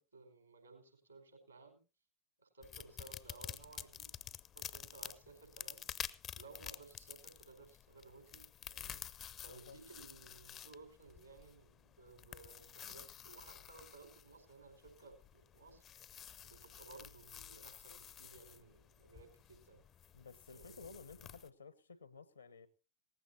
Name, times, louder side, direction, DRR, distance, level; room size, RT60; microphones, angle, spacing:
voice 1, 0.0-1.8 2.4-4.1 4.5-5.8 6.3-8.4 8.7-9.0 9.4-15.8 16.4-19.8 20.5-20.9, right 3 dB, 80° right, 4.8 m, -58 dB
sound 1, 2.6-21.5, left 10 dB, 30° left, 0.6 m, -51 dB
voice 2, 9.5-9.8 20.1-22.7, left 4 dB, 75° left, 1.1 m, -54 dB
18.0 x 15.0 x 2.8 m
figure-of-eight pair, 90°, 0 cm